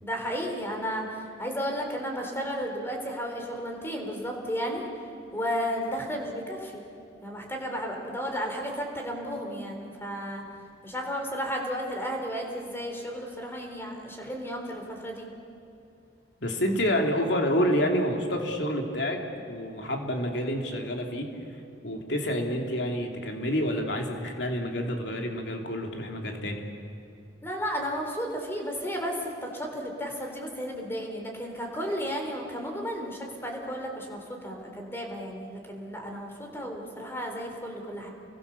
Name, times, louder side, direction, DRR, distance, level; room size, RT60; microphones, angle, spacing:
voice 1, 0.0-4.9 5.3-6.8 7.2-10.4 10.8-15.3 27.4-38.1, equal, 15° left, 2 dB, 3.8 m, -33 dB
voice 2, 16.4-19.2 19.5-21.3 21.8-26.6, equal, 70° left, 2 dB, 3.1 m, -28 dB
30.0 x 23.0 x 7.0 m, 2.6 s
head